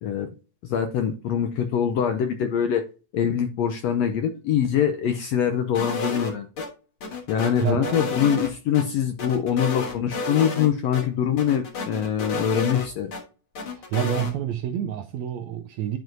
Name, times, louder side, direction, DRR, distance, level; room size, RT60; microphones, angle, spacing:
voice 1, 0.6-2.8 3.1-6.5 7.3-13.1, left 8 dB, 80° left, 1.5 m, -24 dB
sound 1, 5.7-6.7 7.0-8.8 9.2-10.7 10.9-11.0 11.4-13.2 13.5-14.3, left 3 dB, 50° left, 1.8 m, -31 dB
voice 2, 7.6-8.0 13.7-16.0, right 11 dB, 85° right, 1.6 m, -28 dB
10.5 x 4.5 x 2.6 m
omnidirectional pair, 3.7 m